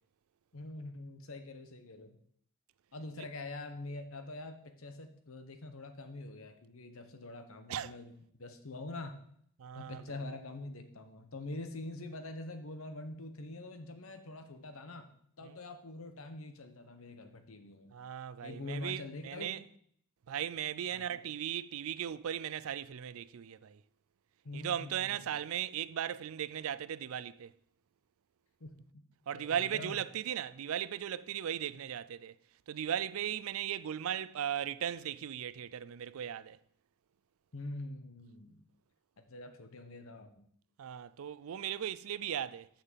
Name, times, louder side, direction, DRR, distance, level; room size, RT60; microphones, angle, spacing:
voice 1, 0.5-2.2 2.9-8.1 8.4-9.2 9.7-17.9 18.4-19.6 20.9-21.3 24.4-25.3 28.6-29.0 29.3-30.0 37.5-38.6 39.2-40.4, left 2 dB, 75° left, 1.1 m, -45 dB
voice 2, 9.6-10.0 15.4-15.6 17.9-19.6 20.3-23.8 24.5-27.5 29.3-32.3 32.7-36.6 40.8-42.7, right 9 dB, 75° right, 0.4 m, -37 dB
6.7 x 5.7 x 7.3 m
head